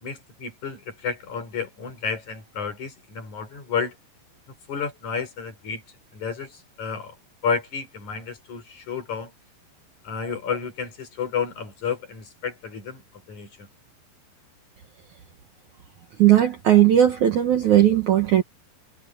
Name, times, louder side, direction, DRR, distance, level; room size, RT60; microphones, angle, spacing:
voice 1, 0.0-4.0 4.7-5.8 6.1-7.2 7.4-9.3 10.0-13.7, left 6 dB, 40° left, 5.7 m, -31 dB
voice 2, 16.2-18.4, right 11 dB, 65° right, 2.0 m, -17 dB
omnidirectional pair, 5.2 m